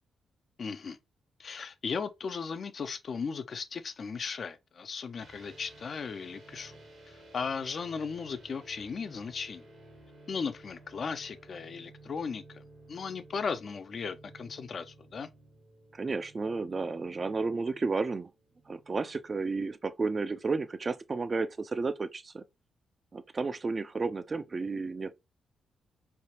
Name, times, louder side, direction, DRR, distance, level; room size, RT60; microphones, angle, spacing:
voice 1, 0.6-1.0 1.4-6.7 7.1-9.6 10.3-12.6 12.9-15.3, left 5 dB, 55° left, 0.4 m, -36 dB
sound 1, 5.2-19.4, right 2 dB, 80° right, 1.3 m, -54 dB
voice 2, 15.9-18.3 18.7-22.4 23.1-25.1, right 4 dB, 40° right, 0.4 m, -32 dB
3.3 x 2.4 x 2.8 m
supercardioid pair, 60°, 0 cm